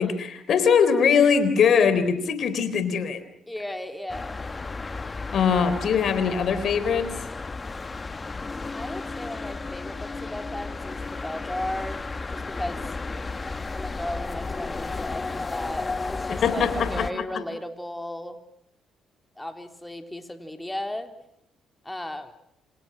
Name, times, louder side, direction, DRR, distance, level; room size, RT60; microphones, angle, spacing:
voice 1, 0.0-3.2 5.3-7.1 16.3-17.1, left 6 dB, 60° left, 11 dB, 3.9 m, -21 dB
voice 2, 3.5-4.4 8.7-12.8 13.7-18.4 19.4-21.1 21.8-22.3, left 1 dB, 10° left, 6 dB, 3.8 m, -35 dB
sound 1, 4.1-17.1, left 3 dB, 30° left, 1.3 m, -33 dB
27.5 x 26.5 x 6.1 m, 0.75 s
supercardioid pair, 60°, 0 cm